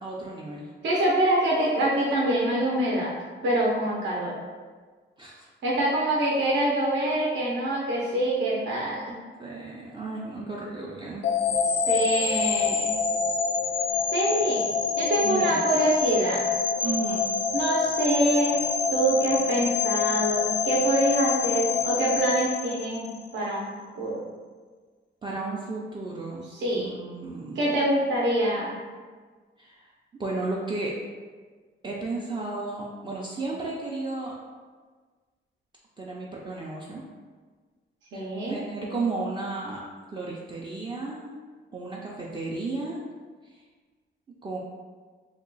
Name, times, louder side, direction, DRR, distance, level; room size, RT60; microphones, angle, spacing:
voice 1, 0.0-0.7 5.2-5.4 9.4-11.3 15.2-15.6 16.8-17.3 25.2-26.4 26.7-27.7 29.6-30.9 31.8-34.3 36.0-37.0 38.1-39.8 40.1-41.3 41.7-43.0 43.4-43.6 44.4-44.6, right 3 dB, 25° right, -4 dB, 0.3 m, -33 dB
voice 2, 0.8-3.1 3.4-4.3 5.6-9.2 11.7-12.9 14.1-14.6 15.0-16.4 17.5-18.6 18.9-23.7 24.0-24.3 26.5-27.0 27.6-28.7 38.1-38.6, right 1 dB, 70° right, -5 dB, 0.6 m, -25 dB
sound 1, 11.2-23.4, left 5 dB, 75° left, 0.5 m, -26 dB
2.8 x 2.2 x 3.9 m, 1.5 s
wide cardioid pair, 140°, 20 cm